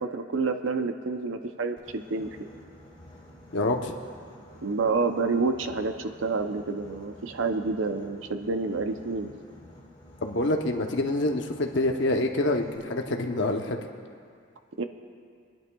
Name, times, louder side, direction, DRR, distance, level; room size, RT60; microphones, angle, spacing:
voice 1, 0.0-2.5 4.6-9.3 14.8-14.9, right 4 dB, 85° right, 7 dB, 0.6 m, -28 dB
Boat Water vehicle, 1.8-12.8, left 1 dB, 25° left, 1.9 m, -51 dB
voice 2, 3.5-3.9 10.2-13.8, left 2 dB, 65° left, 3 dB, 0.8 m, -26 dB
29.5 x 10.5 x 2.3 m, 2.2 s
head